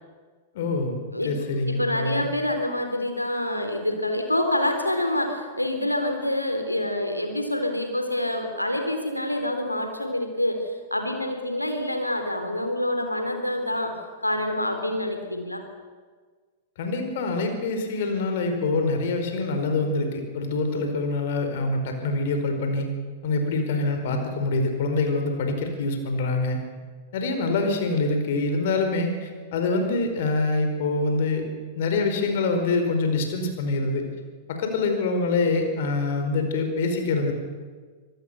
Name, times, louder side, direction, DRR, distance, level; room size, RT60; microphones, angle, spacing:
voice 1, 0.5-2.3 16.8-22.9 23.2-26.6 27.1-31.4 31.7-34.0 34.5-37.3, left 3 dB, 55° left, 5 dB, 4.9 m, -25 dB
voice 2, 1.7-10.6 10.9-13.9 14.2-15.6, left 1 dB, 90° left, 5 dB, 3.6 m, -26 dB
25.5 x 18.5 x 6.9 m, 1.5 s
figure-of-eight pair, 95°, 0 cm